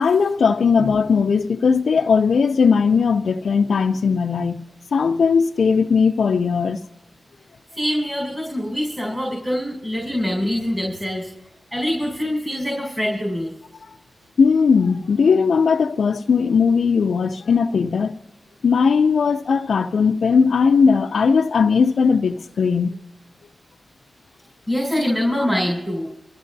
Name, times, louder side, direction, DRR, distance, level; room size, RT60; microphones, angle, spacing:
voice 1, 0.0-4.6 4.9-6.8 14.4-18.2 18.6-22.9, left 5 dB, 70° left, 0.4 m, -18 dB
voice 2, 7.8-11.3 11.7-13.5 24.7-26.1, equal, 20° right, 4.6 m, -24 dB
24.5 x 13.5 x 2.6 m
wide cardioid pair, 140°, 0 cm